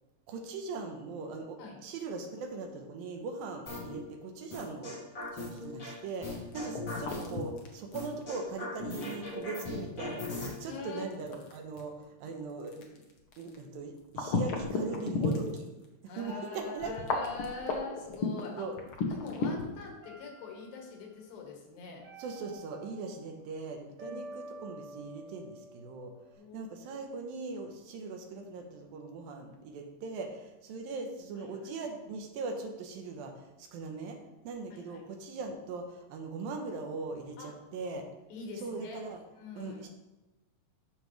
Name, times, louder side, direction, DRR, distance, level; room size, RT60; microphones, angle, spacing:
voice 1, 0.3-5.0 5.3-12.9 13.4-15.7 16.0-16.9 18.6-18.8 22.2-26.1 26.5-34.2 34.4-38.1 38.6-39.2 39.6-39.9, right 3 dB, 85° right, 3 dB, 2.8 m, -40 dB
sound 1, 3.7-4.0 4.5-5.9 6.2-7.4 7.9-10.5, left 2 dB, 30° left, 2.0 m, -38 dB
sound 2, 5.2-15.8 16.2-16.3 16.8-19.8, left 4 dB, 70° left, 1.3 m, -35 dB
voice 2, 10.7-11.2 16.0-18.7 19.1-22.0 24.1-24.2 26.4-27.0 31.4-31.7 34.7-35.0 37.4-37.5 38.3-39.0 39.3-39.8, left 4 dB, 90° left, 1 dB, 3.3 m, -44 dB
sound 3, 16.3-18.6 20.0-21.0 22.0-23.3 24.0-26.4, right 2 dB, 55° right, 3.0 m, -50 dB
12.5 x 5.4 x 3.2 m, 1.0 s
omnidirectional pair, 4.0 m